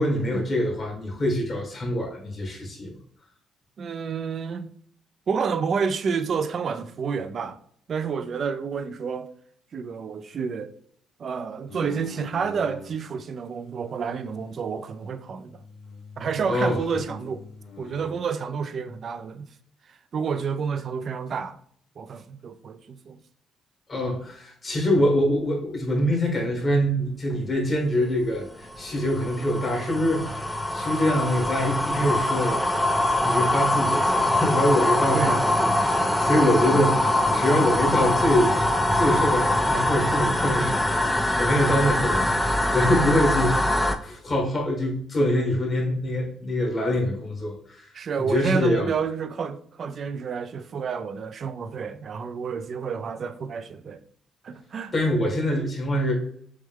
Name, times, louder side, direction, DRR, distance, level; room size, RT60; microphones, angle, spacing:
voice 1, 0.0-2.9 16.5-16.8 23.9-35.5 35.8-38.5 38.9-47.9 48.2-48.9 54.9-56.1, left 1 dB, 40° left, 1.9 m, -25 dB
voice 2, 3.8-4.7 5.3-7.6 7.9-9.3 9.7-10.7 11.2-15.6 16.2-17.4 17.8-19.5 19.9-21.6 22.0-23.2 35.1-35.5 36.3-36.5 36.9-37.0 47.9-54.0 54.4-54.9, right 6 dB, 55° right, 0.4 m, -29 dB
sound 1, 11.7-13.0 13.5-15.2 15.5-18.2, left 3 dB, 75° left, 1.7 m, -44 dB
sound 2, 28.4-44.0, left 1 dB, 5° left, 0.5 m, -23 dB
6.2 x 2.3 x 3.6 m
cardioid pair, 90°, 0 cm